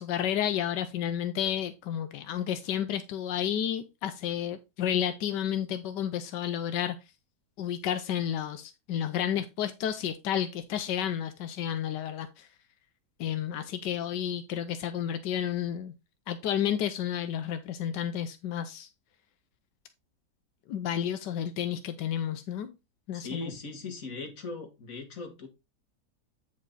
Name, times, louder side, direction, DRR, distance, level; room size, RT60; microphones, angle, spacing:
voice 1, 0.0-7.0 7.6-12.5 13.2-15.9 16.3-18.9 20.7-22.7 23.1-23.5, left 10 dB, 85° left, 1.4 m, -31 dB
voice 2, 23.1-25.5, left 3 dB, 50° left, 2.3 m, -39 dB
8.6 x 5.5 x 3.9 m
omnidirectional pair, 1.8 m